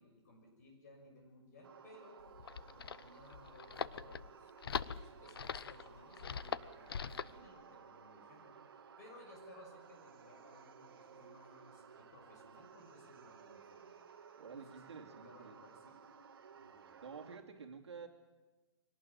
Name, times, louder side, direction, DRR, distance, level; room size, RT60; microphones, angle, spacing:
voice 1, 0.0-2.2 2.6-8.6 9.0-13.9 14.5-16.1 16.5-17.1, left 2 dB, 35° left, 2 dB, 6.4 m, -60 dB
sound 1, 1.6-17.4, right 6 dB, 50° right, 2.0 m, -57 dB
sound 2, 2.2-7.4, left 7 dB, 55° left, 0.8 m, -42 dB
voice 2, 14.4-15.6 17.0-18.1, right 6 dB, 65° right, 3 dB, 2.8 m, -50 dB
23.5 x 18.5 x 8.9 m, 1.2 s
hypercardioid pair, 175°, 15 cm